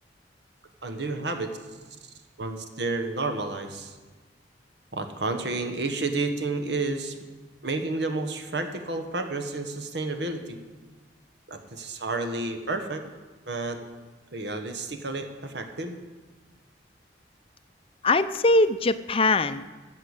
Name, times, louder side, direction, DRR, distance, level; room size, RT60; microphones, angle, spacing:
voice 1, 0.8-1.6 2.0-4.0 4.9-7.2 7.6-10.6 11.5-13.0 13.5-13.8 14.3-16.0, right 3 dB, 70° right, 7 dB, 1.3 m, -31 dB
voice 2, 18.0-19.7, left 2 dB, 30° left, 12 dB, 0.5 m, -22 dB
13.5 x 7.7 x 8.1 m, 1.3 s
head